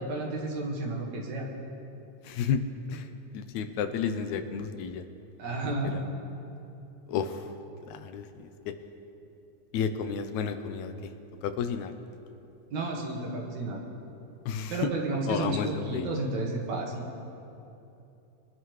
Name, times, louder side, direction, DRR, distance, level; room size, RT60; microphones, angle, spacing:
voice 1, 0.0-1.4 5.4-6.0 12.7-13.8 14.7-17.1, right 2 dB, 75° right, -1 dB, 3.0 m, -32 dB
voice 2, 2.2-2.6 2.9-3.1 3.3-5.0 5.6-6.0 7.1-7.4 7.9-8.5 9.7-11.1 11.4-11.9 14.5-14.8 15.3-16.1, left 7 dB, 85° left, 9 dB, 2.0 m, -32 dB
23.0 x 11.0 x 3.2 m, 2.8 s
omnidirectional pair, 3.3 m